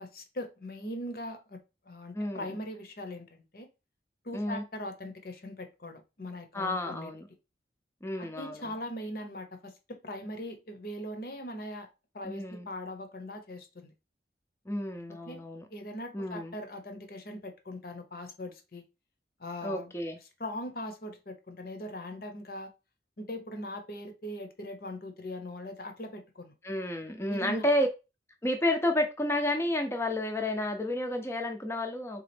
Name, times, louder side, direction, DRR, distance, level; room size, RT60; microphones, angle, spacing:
voice 1, 0.0-1.6 1.9-3.3 3.5-3.7 4.2-7.1 8.2-11.9 12.1-13.9 15.1-15.4 15.7-18.8 19.4-19.9 20.4-22.7 23.2-26.5 27.3-27.7, left 1 dB, 55° left, 0.9 m, -40 dB
voice 2, 2.1-2.5 4.3-4.6 6.5-7.3 8.0-8.7 12.2-12.7 14.7-15.7 16.1-16.5 19.6-20.2 26.6-27.9 28.4-32.2, left 1 dB, 15° left, 0.5 m, -31 dB
3.9 x 3.7 x 3.4 m
head